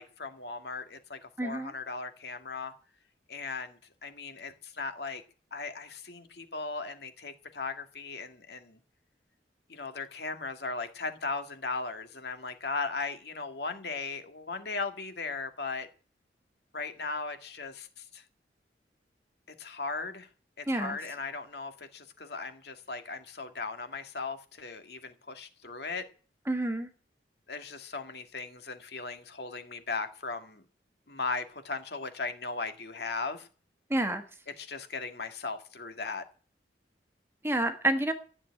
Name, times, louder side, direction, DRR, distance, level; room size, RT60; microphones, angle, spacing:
voice 1, 0.0-2.7 3.3-5.2 5.5-8.8 9.7-15.9 16.7-18.2 19.6-20.3 20.6-26.0 27.5-30.6 31.1-33.5 34.5-36.2, left 4 dB, 70° left, 2.0 m, -37 dB
voice 2, 1.4-1.7 20.7-20.9 26.5-26.9 33.9-34.2 37.4-38.1, right 1 dB, 15° right, 1.3 m, -28 dB
14.0 x 7.0 x 9.8 m
head